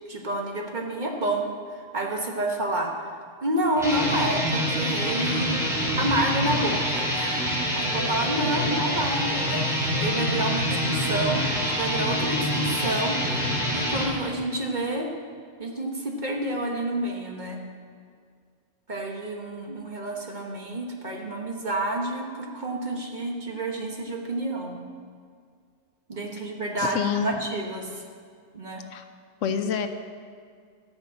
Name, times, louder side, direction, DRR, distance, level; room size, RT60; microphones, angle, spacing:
voice 1, 0.1-5.6 6.0-15.1 15.6-17.6 18.9-24.7 26.1-28.0 28.5-28.8, right 1 dB, 40° right, 1 dB, 1.2 m, -29 dB
sound 1, 3.7-14.1, equal, ahead, 2.3 m, -26 dB
voice 2, 26.8-27.3 28.9-29.0 29.4-29.9, left 7 dB, 80° left, 8 dB, 1.0 m, -27 dB
13.5 x 5.3 x 7.5 m, 2.1 s
omnidirectional pair, 1.3 m